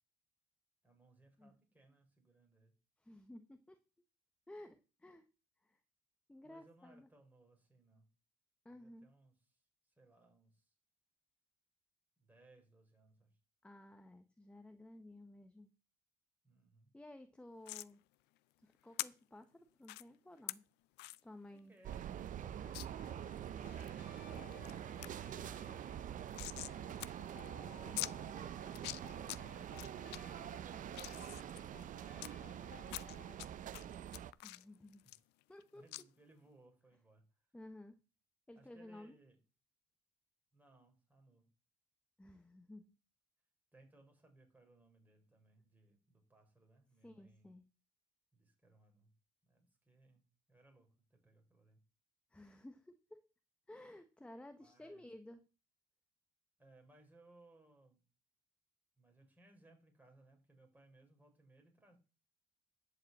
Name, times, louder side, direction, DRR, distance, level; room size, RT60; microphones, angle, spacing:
voice 1, 0.8-2.7 6.4-8.1 8.7-10.7 12.2-13.4 16.4-16.9 21.5-26.5 35.7-37.4 38.6-39.4 40.5-41.5 43.7-47.5 48.3-49.1 49.4-51.8 54.6-55.1 56.6-58.0 59.0-62.0, right 2 dB, 10° right, 3 dB, 4.1 m, -66 dB
voice 2, 3.0-3.8 4.5-5.3 5.6-5.8 6.3-7.1 8.6-9.1 13.6-15.7 16.9-18.0 18.6-20.6 21.2-21.7 27.7-28.1 34.4-35.0 35.5-35.8 37.5-38.0 38.5-39.2 42.2-43.0 47.0-47.6 52.3-53.2 53.7-55.4, left 1 dB, 5° left, 9 dB, 1.0 m, -55 dB
sound 1, 17.7-17.9 19.0-19.1 19.8-20.0 20.5-20.6 21.0-21.2 21.6-21.7 21.9-22.0 22.7-22.9 23.4-23.9 24.4-24.7 25.0-25.1 25.4-26.8 27.0-27.1 27.4-27.5 28.0-28.1 28.7-29.4 29.8-30.2 30.7-32.3 32.9-33.5 33.7-35.6 35.9-36.0, left 19 dB, 90° left, 0.5 m, -44 dB
sound 2, 21.8-34.3, right 10 dB, 50° right, 0.6 m, -46 dB
sound 3, 22.6-33.4, left 11 dB, 70° left, 1.3 m, -61 dB
12.0 x 5.1 x 7.9 m, 0.33 s
cardioid pair, 110°, 17 cm